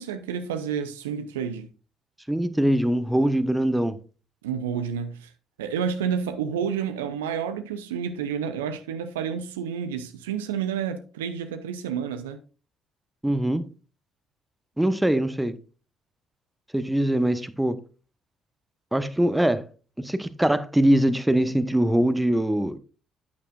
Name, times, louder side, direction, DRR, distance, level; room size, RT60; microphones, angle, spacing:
voice 1, 0.0-1.7 4.4-5.3 5.6-12.4, right 7 dB, 80° right, 0.6 m, -30 dB
voice 2, 2.3-4.0 13.2-13.6 14.8-15.6 16.7-17.8 18.9-19.7 20.0-22.8, right 1 dB, 10° right, 1.0 m, -22 dB
11.5 x 9.0 x 2.4 m
hypercardioid pair, 50°, 0 cm